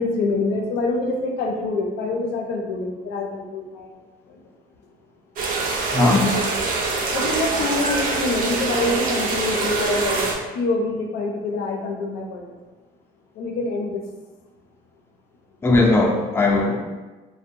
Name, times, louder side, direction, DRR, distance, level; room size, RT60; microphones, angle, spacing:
voice 1, 0.0-3.9 4.3-4.4 7.1-12.5 13.4-14.0, left 2 dB, 85° left, 1 dB, 0.5 m, -26 dB
sound 1, 5.4-10.3, right 3 dB, 55° right, 0.5 m, -24 dB
voice 2, 5.9-6.5 15.6-16.8, left 2 dB, 15° left, -1 dB, 0.4 m, -18 dB
2.6 x 2.1 x 2.6 m, 1.2 s
cardioid pair, 110°, 17 cm